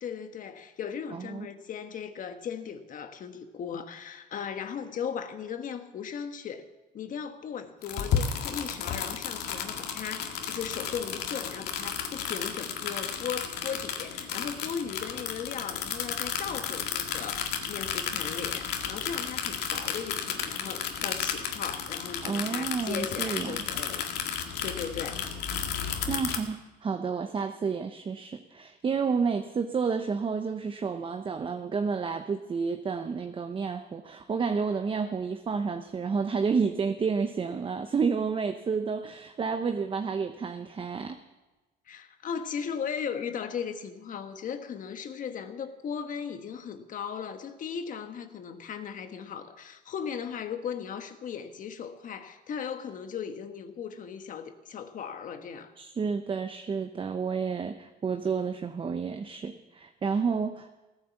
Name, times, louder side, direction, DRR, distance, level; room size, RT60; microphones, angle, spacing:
voice 1, 0.0-6.7 6.9-25.2 41.9-55.7, left 7 dB, 50° left, 1.4 m, -37 dB
voice 2, 1.1-1.5 22.2-23.7 26.1-41.2 55.8-60.7, right 5 dB, 30° right, 0.8 m, -30 dB
sound 1, 7.8-26.4, left 7 dB, 75° left, 1.9 m, -33 dB
17.0 x 10.0 x 7.1 m
cardioid pair, 110°, 17 cm